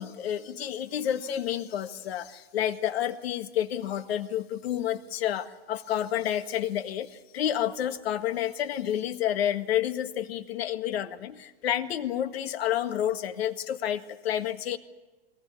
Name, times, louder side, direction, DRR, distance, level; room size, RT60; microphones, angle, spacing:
voice 1, 0.0-14.8, left 11 dB, 65° left, 9 dB, 1.8 m, -30 dB
22.0 x 18.5 x 9.7 m, 1.2 s
supercardioid pair, 155°, 33 cm